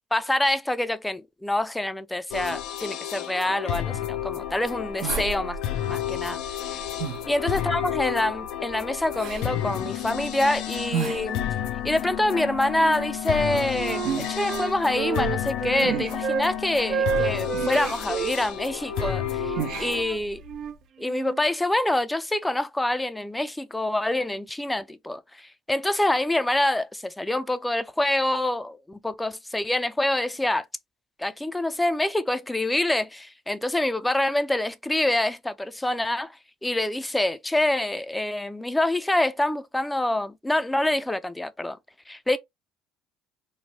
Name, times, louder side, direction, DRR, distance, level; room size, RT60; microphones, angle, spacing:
voice 1, 0.1-5.6 5.9-6.4 6.7-6.8 7.3-11.4 11.8-14.0 14.3-20.4 21.0-30.6 31.2-36.3 36.6-41.8 42.1-42.4, left 1 dB, 10° left, 0.4 m, -26 dB
sound 1, 2.3-20.0, left 11 dB, 75° left, 0.4 m, -31 dB
sound 2, 4.1-20.7, right 7 dB, 70° right, 0.8 m, -37 dB
Wind instrument woodwind instrument, 12.2-13.1 13.4-16.5 16.9-18.3 18.9-21.4, right 7 dB, 55° right, 0.4 m, -30 dB
3.2 x 2.1 x 2.8 m
supercardioid pair, 80°, 0 cm